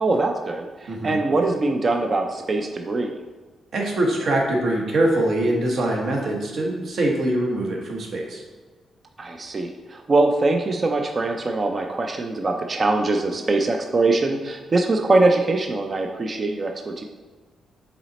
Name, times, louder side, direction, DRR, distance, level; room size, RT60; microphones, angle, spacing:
voice 1, 0.0-3.1 9.2-17.0, right 2 dB, 30° right, 3 dB, 0.5 m, -22 dB
voice 2, 0.9-1.2 3.7-8.4, right 1 dB, 55° right, 0 dB, 1.2 m, -23 dB
7.2 x 4.0 x 4.1 m, 1.4 s
wide cardioid pair, 150°, 0 cm